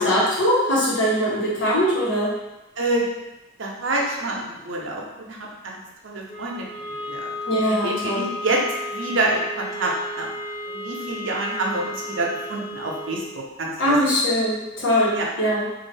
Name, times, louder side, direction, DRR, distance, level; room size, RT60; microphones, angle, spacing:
voice 1, 0.0-2.3 7.5-8.3 13.8-15.6, equal, 70° left, -7 dB, 1.0 m, -21 dB
voice 2, 2.8-3.1 3.6-5.8 6.0-6.6 7.0-7.3 7.7-8.6 8.9-10.3 10.6-13.2 13.6-13.9 15.1-15.3, right 2 dB, 90° right, -1 dB, 0.6 m, -27 dB
sound 1, 6.3-13.2, left 1 dB, 35° left, 0.6 m, -33 dB
2.6 x 2.4 x 3.3 m, 0.98 s
head